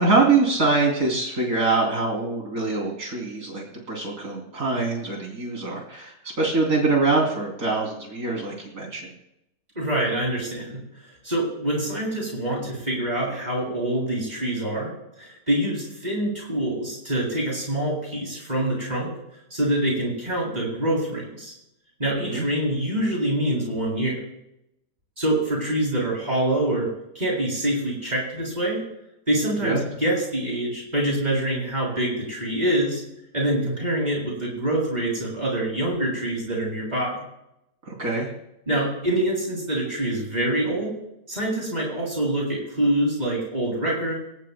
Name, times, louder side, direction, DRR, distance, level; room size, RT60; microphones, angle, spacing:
voice 1, 0.0-9.1 22.3-22.4 29.6-29.8 37.9-38.3, right 3 dB, 80° right, -2 dB, 3.6 m, -24 dB
voice 2, 9.8-10.8 11.2-19.1 19.5-21.5 22.0-24.2 25.2-26.9 27.1-28.8 29.3-33.0 33.3-37.2 38.7-40.9 41.3-44.1, right 1 dB, 30° right, -3 dB, 7.4 m, -25 dB
26.5 x 17.5 x 2.2 m, 0.83 s
omnidirectional pair, 1.5 m